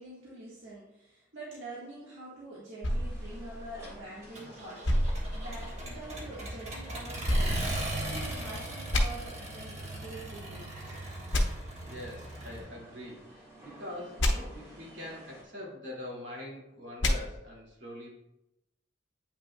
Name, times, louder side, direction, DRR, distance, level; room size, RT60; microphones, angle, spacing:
voice 1, 0.0-11.0, right 2 dB, 85° right, -7 dB, 1.5 m, -46 dB
sound 1, 2.8-4.2 4.8-6.1 7.2-8.4 8.9-9.0 11.3-11.4 14.2-14.3 17.0-17.1, left 1 dB, 85° left, 0.9 m, -29 dB
sound 2, 2.9-15.4, right 1 dB, 15° right, 1.6 m, -54 dB
Accelerating revving vroom, 4.4-12.6, right 1 dB, 35° right, 1.3 m, -39 dB
voice 2, 11.9-18.1, left 1 dB, 70° right, -3 dB, 2.2 m, -43 dB
8.6 x 5.8 x 2.3 m, 0.87 s
head